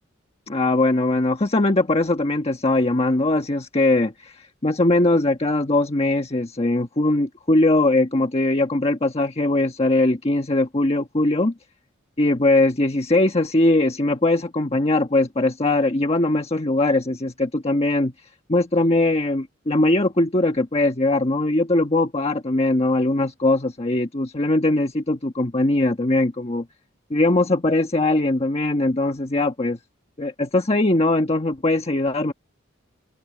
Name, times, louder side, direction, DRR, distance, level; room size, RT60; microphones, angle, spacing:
voice 1, 0.5-11.5 12.2-18.1 18.5-26.7 27.1-29.8 30.2-32.3, left 2 dB, 30° left, 1.3 m, -20 dB
open air
head